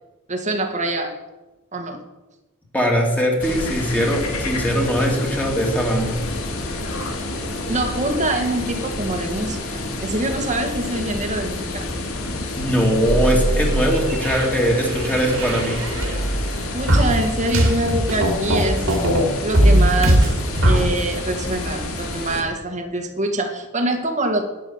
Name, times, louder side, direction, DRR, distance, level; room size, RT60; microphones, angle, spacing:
voice 1, 0.3-1.2 1.7-2.0 7.7-11.9 16.7-19.0 19.4-20.3 20.6-24.4, right 1 dB, 35° right, 4 dB, 1.9 m, -24 dB
voice 2, 2.7-6.2 12.5-15.8, equal, 5° left, -1 dB, 2.8 m, -21 dB
sound 1, 3.4-22.4, left 2 dB, 85° left, 2.3 m, -29 dB
sound 2, 3.4-13.4, left 3 dB, 35° left, 4.1 m, -39 dB
sound 3, 13.1-16.5 16.9-19.2 19.5-20.8, right 1 dB, 70° right, 2.8 m, -19 dB
11.0 x 9.8 x 7.2 m, 1.0 s
head